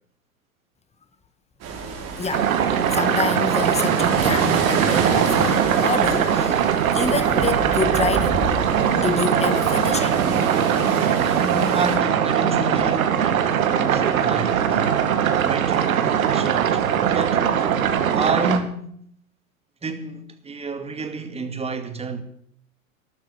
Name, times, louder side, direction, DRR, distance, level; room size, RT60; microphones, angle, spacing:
sound 1, 1.6-12.0, right 4 dB, 35° right, 5.4 m, -28 dB
voice 1, 2.2-2.5 2.9-6.6 6.9-8.4 8.9-10.2, left 4 dB, 15° left, 1.7 m, -27 dB
sound 2, 2.3-18.6, right 8 dB, 75° right, 2.3 m, -21 dB
voice 2, 11.4-16.8 17.1-17.7 18.1-18.9 19.8-22.2, right 3 dB, 15° right, 2.3 m, -30 dB
13.0 x 13.0 x 8.4 m
hypercardioid pair, 105°, 42 cm